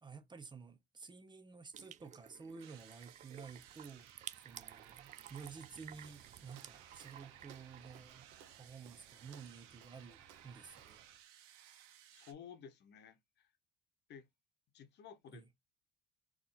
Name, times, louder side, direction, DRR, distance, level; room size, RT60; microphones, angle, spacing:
voice 1, 0.0-4.1 4.4-11.0 15.3-15.5, right 5 dB, 20° right, 0.8 m, -52 dB
sound 1, 1.7-8.3, right 10 dB, 35° right, 0.4 m, -54 dB
sound 2, 2.6-12.3, right 10 dB, 90° right, 1.1 m, -60 dB
Walk footsteps, 5.9-11.2, right 9 dB, 70° right, 0.9 m, -62 dB
voice 2, 12.1-13.5 14.1-14.3 14.7-15.6, left 8 dB, 55° left, 0.9 m, -54 dB
3.8 x 3.1 x 3.7 m
cardioid pair, 105°, 21 cm